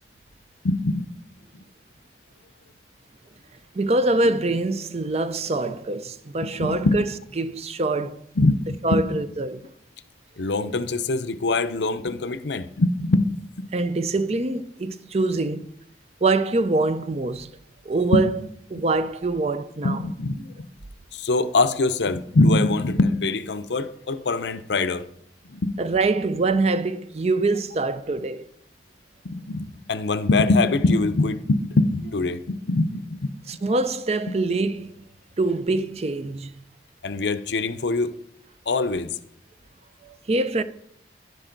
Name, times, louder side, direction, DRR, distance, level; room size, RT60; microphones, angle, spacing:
voice 1, 0.6-1.0 6.4-7.0 8.4-9.1 10.4-13.3 13.6-13.7 18.1-18.2 18.8-18.9 19.8-20.7 21.1-25.1 25.5-25.7 29.2-33.3 37.0-38.1 38.7-39.2, left 2 dB, 75° left, 0.6 m, -23 dB
voice 2, 3.7-7.0 7.4-8.2 8.8-9.7 13.7-15.7 16.2-17.5 17.9-18.4 18.7-20.0 25.8-28.4 33.5-35.0 35.4-36.5 40.0-40.6, right 2 dB, 35° right, 0.5 m, -24 dB
11.0 x 10.0 x 3.9 m
head